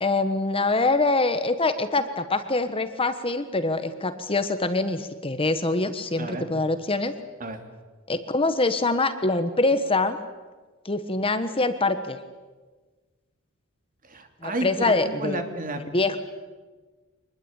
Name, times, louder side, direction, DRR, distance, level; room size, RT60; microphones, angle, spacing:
voice 1, 0.0-7.1 8.1-10.2 10.8-12.2 14.4-15.4 15.9-16.2, left 2 dB, 25° left, 10 dB, 1.3 m, -24 dB
voice 2, 6.2-6.5 7.4-7.6 14.1-15.8, right 1 dB, 40° right, 6 dB, 2.9 m, -31 dB
25.0 x 20.5 x 9.0 m, 1.3 s
head